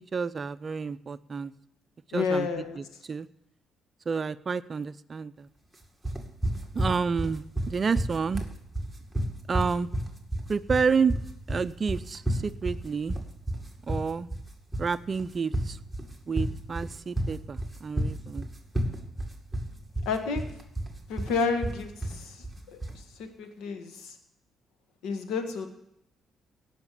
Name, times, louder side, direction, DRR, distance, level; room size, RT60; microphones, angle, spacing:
voice 1, 0.1-1.5 2.1-2.5 2.8-3.3 4.1-5.5 6.7-8.4 9.5-9.9 10.5-11.1 11.5-13.2 13.9-14.3 14.8-15.8 16.3-18.5, right 5 dB, 40° right, 15 dB, 0.5 m, -29 dB
voice 2, 2.1-2.8 20.0-20.5 21.1-24.1 25.0-25.7, left 5 dB, 90° left, 6 dB, 1.6 m, -31 dB
sound 1, 6.0-23.0, right 1 dB, 5° right, 2.2 m, -31 dB
17.0 x 5.9 x 8.3 m, 0.78 s
cardioid pair, 90°, 0 cm